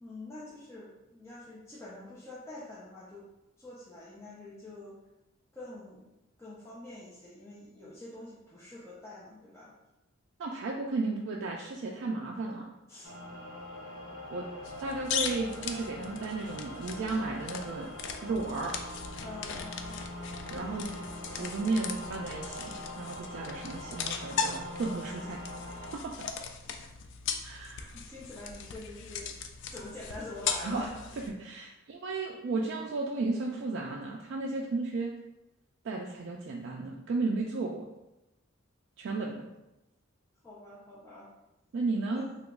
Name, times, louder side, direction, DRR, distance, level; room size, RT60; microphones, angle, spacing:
voice 1, 0.0-3.3 3.6-5.0 5.5-6.1 6.4-9.7 12.9-13.1 19.2-20.0 20.6-21.5 27.6-29.3 29.7-31.0 40.4-41.3 42.1-42.4, left 2 dB, 15° left, -9 dB, 0.5 m, -46 dB
voice 2, 10.4-12.7 14.3-14.5 14.8-17.9 18.2-18.8 20.5-20.9 21.3-25.4 25.9-26.1 27.4-28.0 30.6-30.9 31.4-35.1 35.8-37.9 39.0-39.5 41.7-42.2, right 3 dB, 60° right, -1 dB, 0.3 m, -34 dB
sound 1, 13.0-25.9, left 1 dB, 85° left, 0.7 m, -43 dB
sound 2, 14.6-31.3, left 6 dB, 60° left, 0.3 m, -39 dB
2.9 x 2.3 x 3.5 m, 0.95 s
head